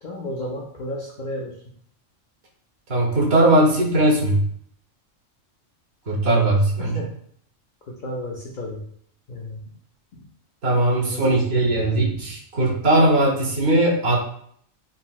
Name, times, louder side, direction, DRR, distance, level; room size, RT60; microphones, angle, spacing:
voice 1, 0.0-1.6 6.9-7.1 7.9-8.8 9.3-9.6 10.1-10.2 11.0-11.9, left 1 dB, 65° left, -2 dB, 0.4 m, -33 dB
voice 2, 2.9-4.4 6.1-7.0 10.6-14.2, right 1 dB, 55° right, -3 dB, 0.9 m, -19 dB
3.9 x 2.0 x 2.3 m, 0.64 s
omnidirectional pair, 1.3 m